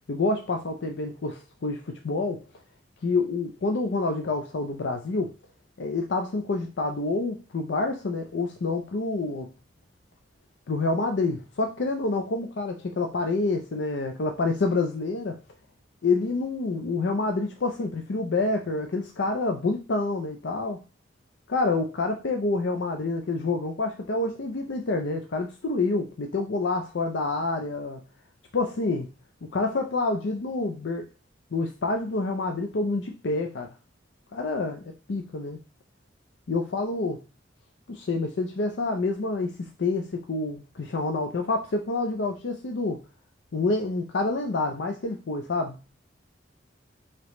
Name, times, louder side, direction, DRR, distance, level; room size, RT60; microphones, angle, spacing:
voice 1, 0.1-2.4 3.0-5.3 5.8-9.5 10.7-15.4 16.0-20.8 21.5-28.0 28.5-29.1 29.5-31.1 31.5-33.7 34.3-35.6 36.5-37.2 37.9-43.0 43.5-45.8, left 3 dB, 70° left, 0.5 m, -27 dB
4.9 x 2.9 x 3.0 m
head